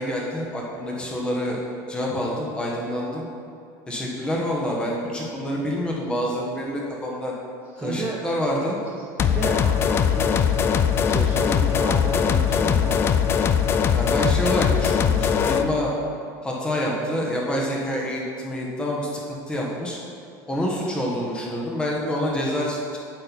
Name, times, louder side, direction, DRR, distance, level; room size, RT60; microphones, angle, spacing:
voice 1, 0.0-1.6 1.9-3.2 3.9-7.3 7.8-8.8 13.9-15.9 16.4-19.2 19.5-20.0 20.5-23.0, equal, 10° left, -3 dB, 1.3 m, -27 dB
voice 2, 7.7-8.2 8.8-13.2, right 3 dB, 20° right, -2 dB, 0.6 m, -33 dB
sound 1, 9.2-15.7, left 7 dB, 25° left, 0.4 m, -21 dB
8.9 x 7.5 x 4.1 m, 2.5 s
cardioid pair, 155°, 9 cm